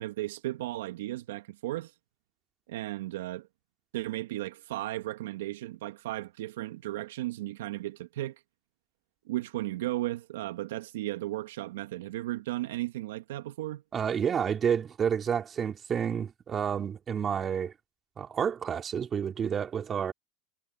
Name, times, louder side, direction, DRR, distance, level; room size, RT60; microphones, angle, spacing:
voice 1, 0.0-1.9 2.7-3.5 3.9-8.4 9.3-13.8, right 16 dB, 80° right, 2.0 m, -35 dB
voice 2, 13.9-17.7 18.2-20.1, right 8 dB, 30° right, 2.7 m, -29 dB
hypercardioid pair, 100°, 0 cm